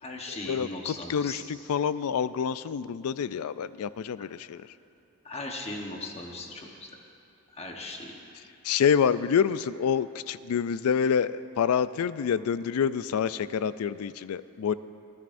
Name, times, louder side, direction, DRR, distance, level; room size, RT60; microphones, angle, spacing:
voice 1, 0.0-1.4 5.2-6.9 7.5-8.1, left 2 dB, 30° left, 1 dB, 1.1 m, -38 dB
voice 2, 1.1-4.7 8.6-14.7, left 7 dB, 85° left, 16 dB, 0.3 m, -27 dB
26.0 x 11.0 x 2.6 m, 2.6 s
head